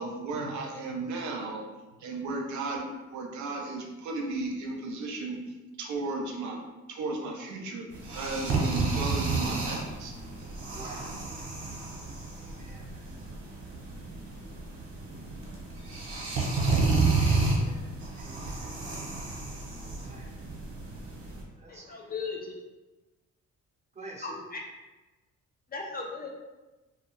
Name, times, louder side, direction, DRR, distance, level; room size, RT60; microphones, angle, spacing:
voice 1, 0.0-1.7 2.0-5.4 5.8-6.6 6.9-7.8 8.1-10.1, right 3 dB, 70° right, 1 dB, 0.6 m, -34 dB
sound 1, 7.9-21.4, right 3 dB, 50° right, 0.9 m, -31 dB
voice 2, 10.7-11.1 12.4-13.2 17.2-18.7 19.7-20.3 21.5-22.1 23.9-24.4 26.1-26.3, right 2 dB, 25° right, -2 dB, 0.7 m, -48 dB
voice 3, 21.7-22.5 24.2-24.6 25.7-26.3, left 4 dB, 30° left, 0 dB, 0.4 m, -37 dB
2.3 x 2.3 x 3.0 m, 1.1 s
cardioid pair, 90°, 30 cm